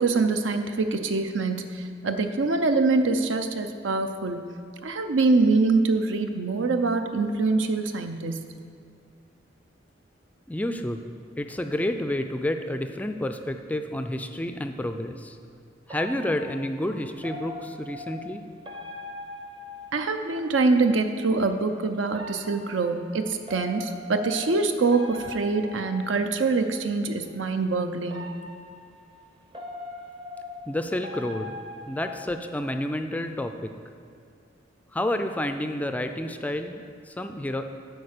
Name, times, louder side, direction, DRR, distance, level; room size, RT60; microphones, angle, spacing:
voice 1, 0.0-4.5 4.8-8.5 19.9-28.3, right 3 dB, 80° right, 7 dB, 0.6 m, -24 dB
voice 2, 10.5-11.0 11.4-15.4 15.9-18.4 30.7-33.7 34.9-37.7, left 1 dB, 10° left, 7 dB, 0.3 m, -30 dB
sound 1, 15.9-20.5 22.1-26.7 28.0-32.7, left 2 dB, 25° right, 0.7 m, -41 dB
8.6 x 4.7 x 6.6 m, 2.4 s
head